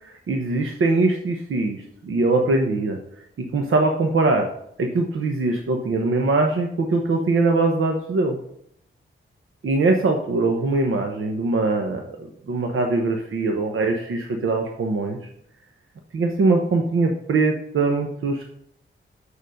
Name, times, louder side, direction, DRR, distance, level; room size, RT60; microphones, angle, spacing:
voice 1, 0.0-3.0 3.5-4.5 4.8-8.4 9.6-15.2 16.1-18.5, right 3 dB, 80° right, 3 dB, 1.0 m, -22 dB
6.9 x 6.9 x 6.4 m, 0.72 s
wide cardioid pair, 150°, 21 cm